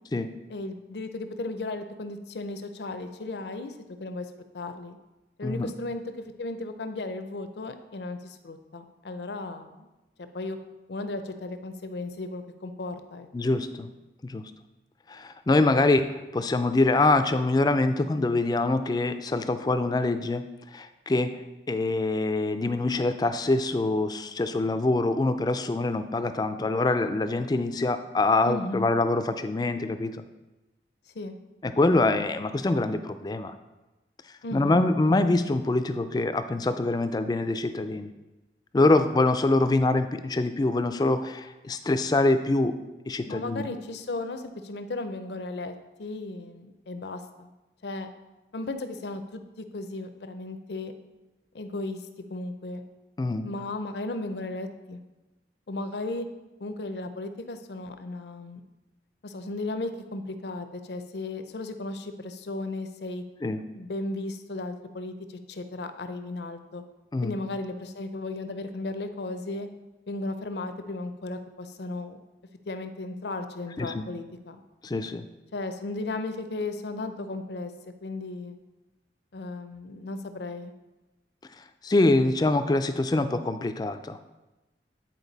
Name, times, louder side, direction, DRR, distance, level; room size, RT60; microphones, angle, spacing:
voice 1, 0.5-3.7 4.0-4.3 4.5-5.0 5.4-9.9 10.2-10.6 10.9-13.3 28.4-28.9 31.1-31.4 34.4-34.9 43.3-47.5 47.8-48.1 48.5-50.9 51.5-52.8 53.4-55.0 55.7-56.3 56.6-58.6 59.2-63.2 63.7-66.8 67.2-69.7 70.1-72.2 72.7-74.6 75.5-77.7 78.0-78.6 79.3-80.7, left 2 dB, 75° left, 8 dB, 0.6 m, -35 dB
voice 2, 13.3-13.9 14.2-14.4 15.1-16.0 16.3-20.4 20.7-21.3 21.7-30.2 31.6-33.6 34.5-38.1 38.7-42.7 43.1-43.7 53.2-53.5 63.4-63.6 67.1-67.3 73.8-74.0 74.8-75.2 81.8-84.2, left 2 dB, 25° left, 10 dB, 0.3 m, -24 dB
8.9 x 4.5 x 4.0 m, 1.1 s
head